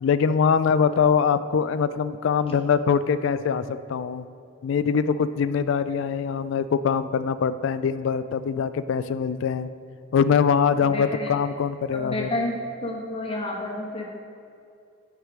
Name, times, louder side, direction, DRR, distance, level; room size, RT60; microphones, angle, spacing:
voice 1, 0.0-4.3 4.6-9.7 10.1-12.3, left 6 dB, 65° left, 14 dB, 0.3 m, -23 dB
voice 2, 10.8-11.3 11.9-12.5 12.8-14.1, left 2 dB, 30° left, -1 dB, 1.1 m, -30 dB
9.3 x 4.8 x 4.9 m, 2.5 s
head